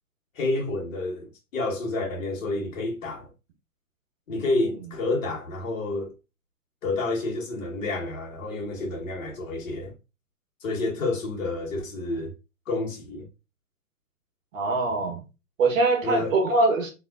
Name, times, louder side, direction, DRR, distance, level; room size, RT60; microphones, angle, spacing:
voice 1, 0.4-3.3 4.3-6.1 6.8-9.9 10.6-12.3 12.7-13.3 16.0-16.3, left 2 dB, 55° left, 2.0 m, -29 dB
voice 2, 14.5-15.2 15.6-16.9, right 3 dB, 55° right, 1.6 m, -23 dB
4.0 x 3.9 x 2.7 m
hypercardioid pair, 135°, 46 cm